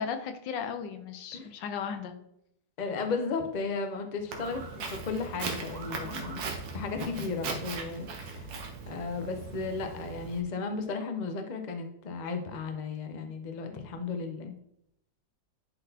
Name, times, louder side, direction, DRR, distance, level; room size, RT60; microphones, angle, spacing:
voice 1, 0.0-2.1, left 6 dB, 85° left, 7 dB, 1.4 m, -35 dB
voice 2, 2.8-6.4 6.7-8.5 8.9-14.6, left 4 dB, 55° left, 6 dB, 0.4 m, -34 dB
Walk footsteps, 4.3-10.4, right 4 dB, 65° right, 1.4 m, -39 dB
10.5 x 4.0 x 2.8 m, 0.76 s
omnidirectional pair, 1.9 m